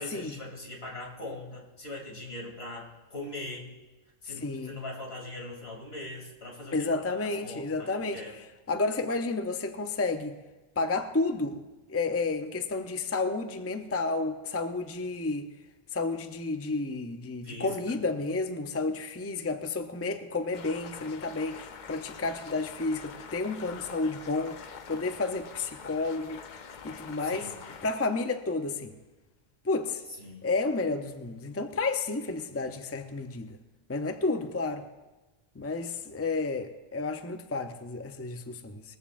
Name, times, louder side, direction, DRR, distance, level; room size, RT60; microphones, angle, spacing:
voice 1, 0.0-3.7 4.2-8.4 17.4-18.0 27.2-27.6 30.2-30.4, left 2 dB, 75° left, -2 dB, 3.1 m, -41 dB
voice 2, 4.4-4.8 6.7-8.2 8.7-10.3 10.8-11.6 11.9-15.5 15.9-24.6 24.9-26.4 26.8-27.5 27.8-28.9 29.6-30.0 30.4-33.6 33.9-34.8 35.6-38.8, left 3 dB, 15° left, 7 dB, 0.6 m, -31 dB
sound 1, 20.5-28.0, left 6 dB, 55° left, 0.7 m, -45 dB
21.5 x 14.5 x 2.5 m, 1.2 s
omnidirectional pair, 1.1 m